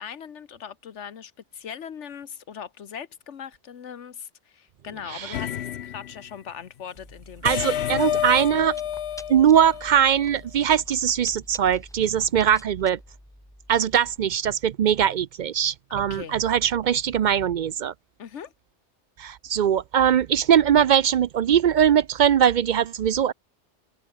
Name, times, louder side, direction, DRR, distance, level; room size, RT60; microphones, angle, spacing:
voice 1, 0.0-7.7 7.9-8.7 16.0-16.3 18.2-18.5, left 8 dB, 85° left, 1.4 m, -40 dB
sound 1, 5.3-6.2 7.4-10.3, left 10 dB, 70° left, 1.0 m, -29 dB
Chewing mastication, 6.9-14.2, equal, 5° left, 1.0 m, -47 dB
voice 2, 7.4-8.7 9.3-13.0 13.7-17.9 19.2-23.3, right 9 dB, 60° right, 0.5 m, -21 dB
open air
omnidirectional pair, 1.2 m